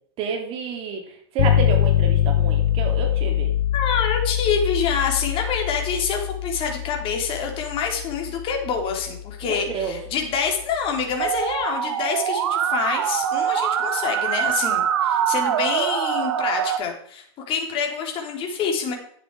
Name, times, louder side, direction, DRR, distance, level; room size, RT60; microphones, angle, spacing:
voice 1, 0.2-3.5 9.4-10.0, right 5 dB, 40° right, 2 dB, 3.3 m, -30 dB
sound 1, 1.4-11.3, left 11 dB, 70° left, 0.8 m, -24 dB
voice 2, 3.7-18.9, left 6 dB, 40° left, 2 dB, 3.5 m, -26 dB
Musical instrument, 11.2-16.8, right 9 dB, 70° right, 1.1 m, -24 dB
10.5 x 8.0 x 4.8 m, 0.63 s
hypercardioid pair, 105°, 14 cm